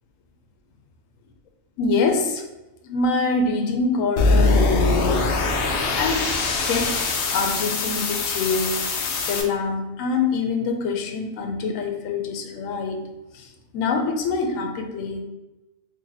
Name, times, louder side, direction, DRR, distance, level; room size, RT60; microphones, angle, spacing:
voice 1, 1.8-2.4 2.8-5.4 5.9-6.3 6.6-6.9 7.3-8.9 9.3-13.1 13.3-15.2, left 4 dB, 85° left, 3 dB, 1.0 m, -25 dB
sound 1, 4.2-9.4, left 3 dB, 65° left, 0.6 m, -22 dB
2.8 x 2.6 x 3.8 m, 1.0 s
omnidirectional pair, 1.3 m